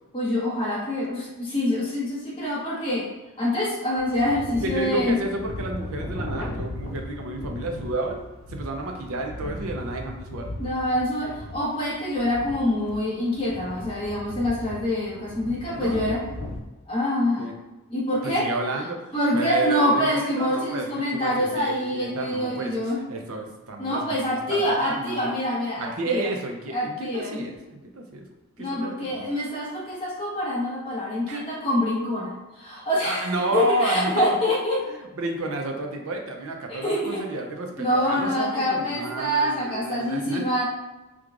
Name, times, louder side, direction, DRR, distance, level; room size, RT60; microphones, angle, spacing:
voice 1, 0.1-3.1 3.4-5.2 10.6-16.2 16.9-17.5 17.9-18.4 19.1-23.0 23.8-26.3 26.7-27.4 28.6-34.8 36.7-37.2 37.8-40.6, left 1 dB, 25° left, -7 dB, 1.2 m, -25 dB
sound 1, 4.0-16.6, left 1 dB, 75° left, 0.7 m, -37 dB
voice 2, 4.6-8.2 8.5-10.5 15.7-16.3 17.4-17.5 18.2-22.7 23.1-25.4 25.8-28.2 28.6-29.3 31.3-31.4 33.0-34.4 34.9-40.4, right 2 dB, 70° right, 3 dB, 0.6 m, -31 dB
4.6 x 2.4 x 2.5 m, 1.1 s
head